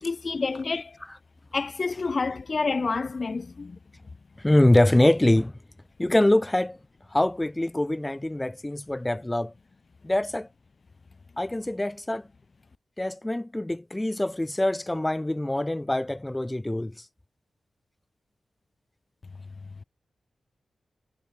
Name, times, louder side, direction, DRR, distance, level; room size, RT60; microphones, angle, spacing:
voice 1, 0.0-1.0 1.5-3.8, left 4 dB, 40° left, 1.4 m, -28 dB
voice 2, 4.4-5.5 6.0-6.8 7.1-9.5 10.0-10.5 11.4-12.3 13.0-16.9, left 1 dB, 10° left, 1.9 m, -24 dB
wide cardioid pair, 115°, 0 cm